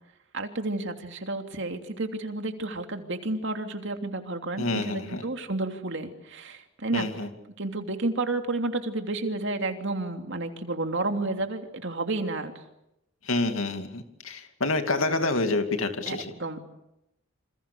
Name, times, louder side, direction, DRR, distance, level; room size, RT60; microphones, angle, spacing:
voice 1, 0.3-7.1 7.6-12.5 16.1-16.6, right 2 dB, 60° right, 5 dB, 3.0 m, -31 dB
voice 2, 4.6-5.2 6.9-7.3 13.2-16.3, left 2 dB, 80° left, 6 dB, 2.6 m, -28 dB
28.0 x 27.5 x 7.0 m, 0.85 s
head